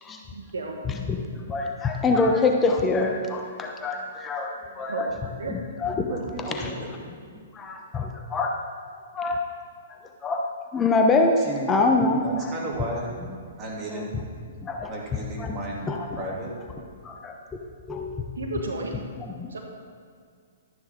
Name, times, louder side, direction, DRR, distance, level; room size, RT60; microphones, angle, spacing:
voice 1, 0.3-0.8 4.9-5.1 5.4-5.5 18.4-18.9 19.5-19.6, right 3 dB, 80° right, 1 dB, 1.7 m, -32 dB
voice 2, 0.8-5.1 5.5-6.1 6.6-6.7 7.5-8.6 9.1-9.4 9.9-11.4 11.7-12.5 13.9-14.1 14.6-14.9 15.4-15.6 15.9-16.2 17.0-17.4 17.9-18.2 19.2-19.5, left 3 dB, 20° left, 2 dB, 0.9 m, -25 dB
voice 3, 4.6-5.0 6.1-6.9 7.4-7.5 11.4-11.7 12.2-13.1 13.6-14.1 14.8-16.5, right 1 dB, 25° right, -3 dB, 2.9 m, -34 dB
12.0 x 10.0 x 3.8 m, 2.2 s
hypercardioid pair, 125°, 0 cm